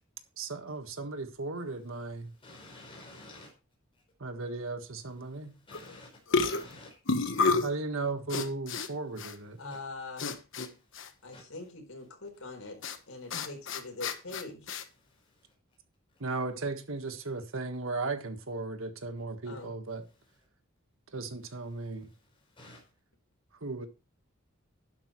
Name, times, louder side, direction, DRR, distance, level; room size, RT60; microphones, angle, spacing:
voice 1, 0.4-2.3 4.2-5.5 7.6-9.6 16.2-20.0 21.1-22.1 23.6-23.9, right 3 dB, 70° right, 1.6 m, -36 dB
voice 2, 2.2-3.5 5.3-7.0 7.3-7.4 9.6-9.8 10.7-11.7 13.1-13.3 13.8-13.9 14.9-15.5 21.7-22.8, left 2 dB, 25° left, 4.9 m, -53 dB
sound 1, 5.7-5.9 6.3-7.8 8.3-8.9 9.2-9.3 10.2-10.7 10.9-11.1 12.8-13.0 13.3-14.8, left 3 dB, 65° left, 1.2 m, -30 dB
voice 3, 9.6-10.3 11.2-12.8 13.1-14.6 19.5-19.7, left 3 dB, 85° left, 4.2 m, -43 dB
12.0 x 10.0 x 3.1 m
head